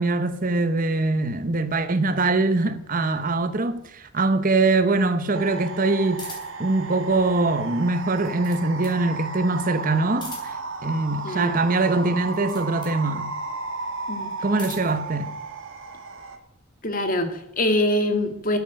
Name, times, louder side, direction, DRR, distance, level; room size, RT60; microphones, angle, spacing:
voice 1, 0.0-6.3 6.6-13.3 14.4-15.3, right 3 dB, 45° right, 1.0 m, -23 dB
sound 1, 5.3-16.4, right 4 dB, 80° right, 1.9 m, -34 dB
sound 2, 6.2-6.7 8.0-9.0 10.1-10.7 12.2-13.0 14.3-15.0, left 3 dB, 20° left, 4.1 m, -42 dB
voice 2, 11.2-11.6 14.1-14.3 16.8-18.6, left 1 dB, 45° left, 1.9 m, -24 dB
12.5 x 9.0 x 6.7 m
head